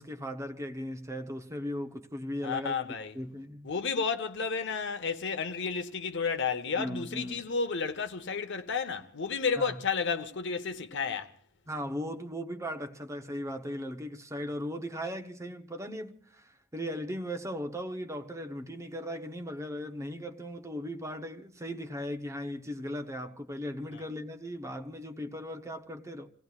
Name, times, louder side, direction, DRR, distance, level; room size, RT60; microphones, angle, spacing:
voice 1, 0.0-2.7 3.1-3.7 6.7-7.4 9.6-9.8 11.7-26.3, equal, 15° right, 0.9 m, -37 dB
voice 2, 2.4-3.1 3.6-11.3 23.9-24.0, left 5 dB, 55° left, 0.9 m, -32 dB
28.5 x 17.5 x 2.4 m
head